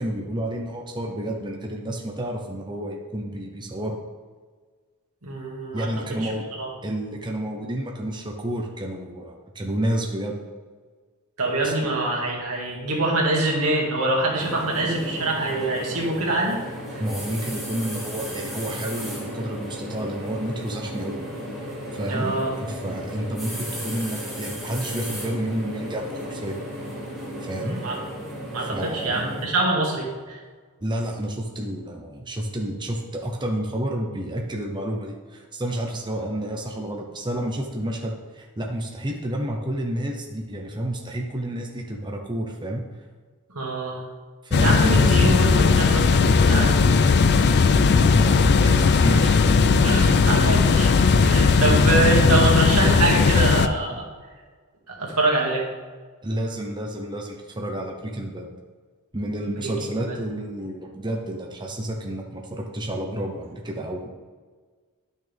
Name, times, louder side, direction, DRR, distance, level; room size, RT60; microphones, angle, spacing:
voice 1, 0.0-4.0 5.7-6.5 6.8-10.4 11.6-11.7 17.0-21.2 21.9-26.6 27.4-27.8 28.6-29.2 30.8-42.8 44.4-45.4 47.8-49.4 56.2-58.5 59.1-64.1, right 1 dB, 20° right, 1 dB, 0.8 m, -30 dB
voice 2, 5.2-5.9 6.2-6.3 6.6-6.7 11.4-16.6 22.1-22.5 27.6-28.0 28.5-30.4 43.5-44.0 44.6-46.8 49.8-54.1 54.9-55.7 59.6-59.7 60.1-60.2, right 2 dB, 85° right, -2 dB, 2.1 m, -24 dB
sound 1, 14.4-29.5, equal, ahead, 2.6 m, -34 dB
sound 2, 44.5-53.7, left 4 dB, 50° left, 0.4 m, -17 dB
11.0 x 6.4 x 3.5 m, 1.5 s
head